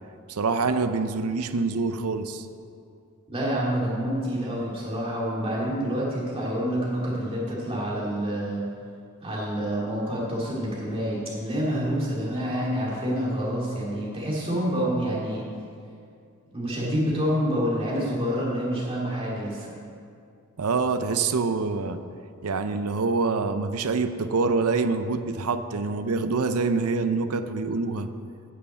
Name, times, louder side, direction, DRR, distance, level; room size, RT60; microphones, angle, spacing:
voice 1, 0.3-2.5 20.6-22.0 22.4-28.1, right 4 dB, 90° right, 10 dB, 0.6 m, -25 dB
voice 2, 3.3-8.6 9.2-15.4 16.5-19.7, equal, 25° right, -5 dB, 2.4 m, -27 dB
9.2 x 6.3 x 7.8 m, 2.4 s
head